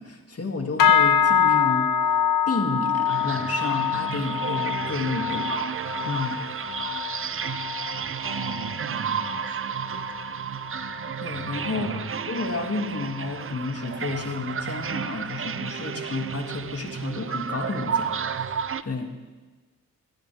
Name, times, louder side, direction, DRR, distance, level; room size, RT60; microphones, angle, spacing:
voice 1, 0.0-2.2 2.5-5.5 6.0-6.4 11.2-12.0 12.3-18.6 18.8-19.1, left 3 dB, 40° left, 2 dB, 2.4 m, -31 dB
sound 1, 0.8-10.3 10.6-11.1 11.5-11.8 12.4-12.5, left 8 dB, 65° left, 0.7 m, -25 dB
sound 2, 3.1-18.8, right 7 dB, 40° right, 0.5 m, -32 dB
voice 2, 8.2-10.1 11.7-12.2, right 4 dB, 70° right, 9 dB, 1.1 m, -38 dB
19.0 x 14.0 x 3.5 m, 1.3 s
cardioid pair, 55°, 35 cm